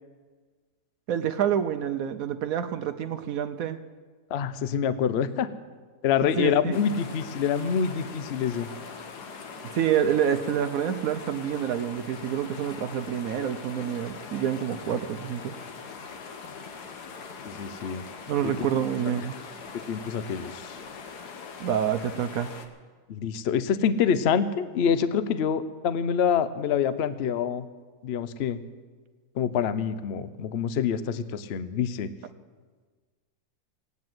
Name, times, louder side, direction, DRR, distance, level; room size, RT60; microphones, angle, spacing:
voice 1, 1.1-3.8 6.2-6.8 9.6-15.5 18.3-19.4 21.6-22.5, right 9 dB, 70° right, 9 dB, 1.0 m, -27 dB
voice 2, 4.3-5.5 6.0-8.7 17.4-18.0 18.4-18.5 19.9-20.8 23.1-27.7 28.0-28.6 29.4-32.1, left 7 dB, 55° left, 13 dB, 0.8 m, -26 dB
sound 1, 6.7-22.7, left 5 dB, 85° left, 1.7 m, -42 dB
17.0 x 9.5 x 7.7 m, 1.4 s
omnidirectional pair, 1.7 m